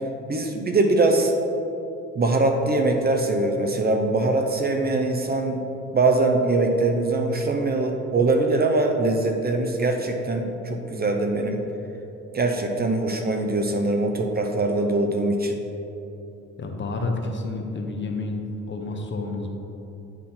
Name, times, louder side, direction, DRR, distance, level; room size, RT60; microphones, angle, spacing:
voice 1, 0.3-1.3 2.1-5.6 5.9-11.6 12.3-15.6, right 2 dB, 30° right, 4 dB, 0.6 m, -22 dB
voice 2, 16.6-19.5, left 3 dB, 40° left, 3 dB, 0.9 m, -29 dB
9.0 x 3.8 x 4.3 m, 2.9 s
cardioid pair, 90°, 30 cm